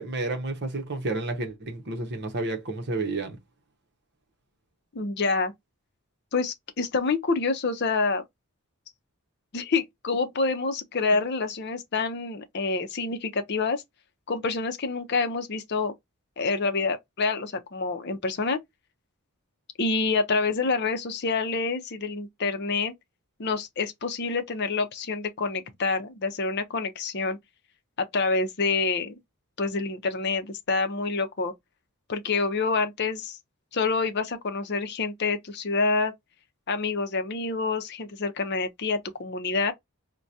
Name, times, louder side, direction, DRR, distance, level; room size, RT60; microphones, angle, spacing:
voice 1, 0.0-3.4, right 2 dB, 50° right, 0.8 m, -31 dB
voice 2, 4.9-5.5 6.3-8.2 9.5-13.8 14.3-15.9 16.4-18.6 19.8-22.9 23.4-27.4 28.0-29.2 29.6-31.5 32.1-33.4 33.7-36.1 36.7-39.7, left 4 dB, 50° left, 0.6 m, -27 dB
4.6 x 2.2 x 2.6 m
head